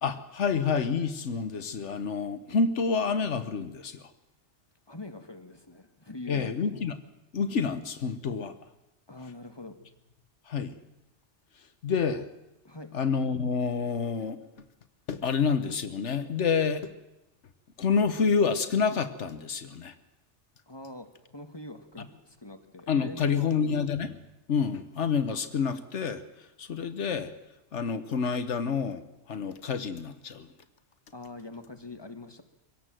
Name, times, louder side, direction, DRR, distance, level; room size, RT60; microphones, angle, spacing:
voice 1, 0.0-4.0 6.3-7.0 7.3-8.5 10.5-10.8 11.8-12.2 12.9-14.4 15.1-16.9 17.8-19.9 22.9-24.1 24.5-26.2 26.6-27.3 27.7-29.0 29.3-30.5, left 5 dB, 80° left, 11 dB, 1.4 m, -28 dB
voice 2, 4.9-6.5 9.1-9.8 12.6-13.0 20.7-21.1 21.3-23.7 31.1-32.4, left 2 dB, 20° left, 6 dB, 1.6 m, -43 dB
24.0 x 17.5 x 7.7 m, 0.94 s
omnidirectional pair, 1.2 m